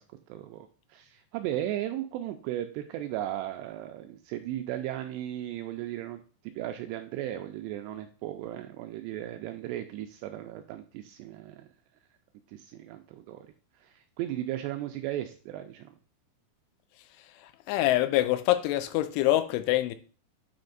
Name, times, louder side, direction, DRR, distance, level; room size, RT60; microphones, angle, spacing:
voice 1, 0.0-11.7 12.5-13.5 13.7-16.0, right 13 dB, 85° right, 2.5 m, -36 dB
voice 2, 17.7-20.0, left 15 dB, 90° left, 3.1 m, -25 dB
9.0 x 4.4 x 3.9 m
omnidirectional pair, 5.4 m